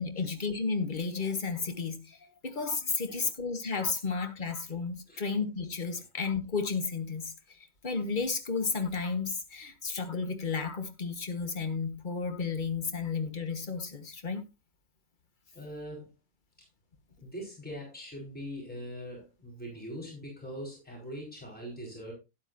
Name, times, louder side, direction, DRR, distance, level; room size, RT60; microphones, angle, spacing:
voice 1, 0.0-14.4, left 4 dB, 30° left, 1.3 m, -33 dB
voice 2, 15.5-16.1 17.2-22.1, equal, 5° left, 4.8 m, -42 dB
12.0 x 10.5 x 2.6 m
omnidirectional pair, 1.7 m